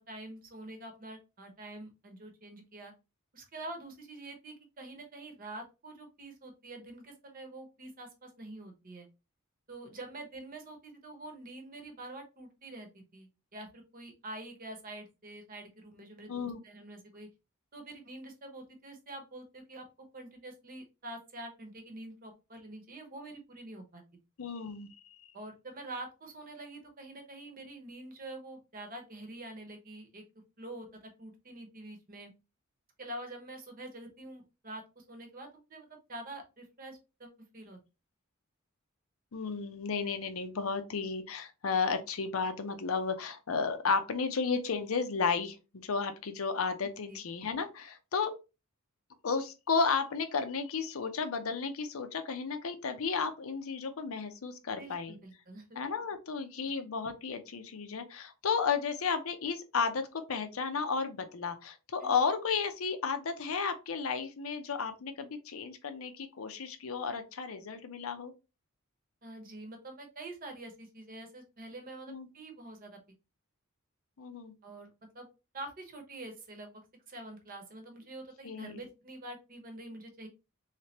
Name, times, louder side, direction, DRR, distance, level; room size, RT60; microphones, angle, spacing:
voice 1, 0.1-2.9 3.3-9.1 9.7-17.3 17.7-19.8 20.1-24.0 25.3-30.2 30.6-32.3 33.0-37.8 47.0-47.2 54.8-55.8 62.0-62.1 69.2-73.0 74.6-74.9 75.1-75.3 75.5-80.3, right 2 dB, 40° right, 4 dB, 0.9 m, -46 dB
voice 2, 16.3-16.6 24.4-24.9 39.3-48.3 49.2-55.1 55.8-68.3 72.1-72.3 74.2-74.5 78.4-78.8, left 5 dB, 75° left, 8 dB, 0.6 m, -33 dB
3.3 x 3.3 x 2.8 m, 0.28 s
head